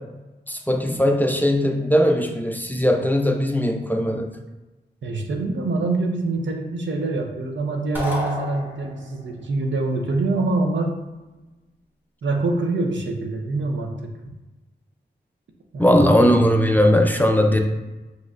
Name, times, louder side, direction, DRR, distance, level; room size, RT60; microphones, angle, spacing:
voice 1, 0.5-4.3 15.8-17.6, equal, 10° left, 3 dB, 0.4 m, -19 dB
voice 2, 5.0-10.9 12.2-14.1 15.7-16.1, right 2 dB, 80° right, 2 dB, 0.6 m, -25 dB
sound 1, 7.9-9.2, left 1 dB, 10° right, 1.1 m, -30 dB
5.2 x 3.0 x 2.5 m, 1.1 s
wide cardioid pair, 70°, 19 cm